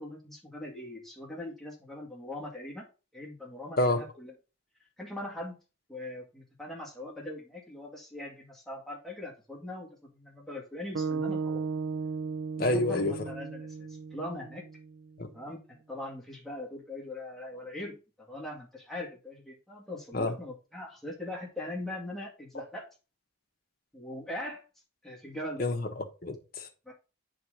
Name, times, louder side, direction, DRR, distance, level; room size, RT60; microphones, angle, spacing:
voice 1, 0.0-2.9 3.1-4.3 5.0-5.6 5.9-11.6 12.6-14.6 15.3-22.9 23.9-24.6 25.0-25.6 26.9-27.0, left 1 dB, ahead, 2.1 m, -41 dB
sound 1, 10.9-15.2, right 5 dB, 75° right, 0.5 m, -35 dB
voice 2, 12.6-13.1 15.2-15.3 20.1-20.4 25.6-26.7, left 2 dB, 50° left, 1.3 m, -28 dB
9.2 x 3.8 x 5.0 m
head